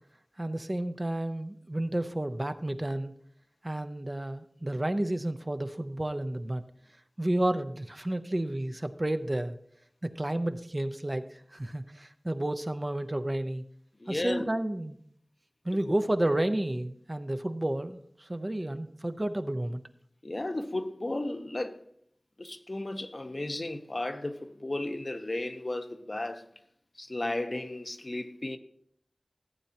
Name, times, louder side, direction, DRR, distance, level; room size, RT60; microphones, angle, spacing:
voice 1, 0.4-3.1 3.6-6.6 7.2-9.6 10.0-13.6 14.1-15.0 15.6-19.8, right 1 dB, 35° right, 0.7 m, -31 dB
voice 2, 14.0-14.4 15.9-16.0 20.2-21.8 22.4-26.5 26.9-28.6, left 2 dB, 50° left, 0.8 m, -34 dB
15.0 x 8.4 x 2.9 m
wide cardioid pair, 45°, 0 cm